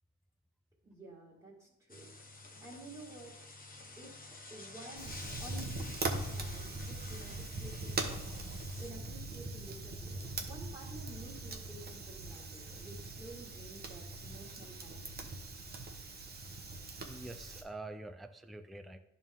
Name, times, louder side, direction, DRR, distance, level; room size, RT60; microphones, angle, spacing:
voice 1, 0.8-2.1 2.6-3.4 4.0-15.3, right 2 dB, 15° right, -8 dB, 2.1 m, -52 dB
sound 1, 1.9-8.9, left 2 dB, 30° left, 1.0 m, -50 dB
Fire, 5.0-17.6, right 2 dB, 30° right, 1.0 m, -41 dB
voice 2, 17.0-19.0, right 2 dB, ahead, 8 dB, 0.4 m, -46 dB
10.5 x 3.6 x 3.6 m, 0.87 s
cardioid pair, 90°, 30 cm